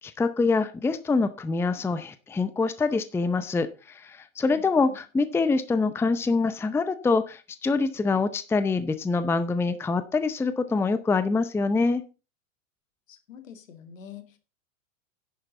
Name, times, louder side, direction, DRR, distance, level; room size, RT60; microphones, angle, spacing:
voice 1, 0.0-12.0, left 4 dB, 5° left, 12 dB, 0.6 m, -25 dB
voice 2, 4.5-5.0 13.1-14.4, left 9 dB, 70° left, 7 dB, 2.3 m, -46 dB
10.5 x 9.3 x 4.0 m, 0.32 s
figure-of-eight pair, 95°, 40 cm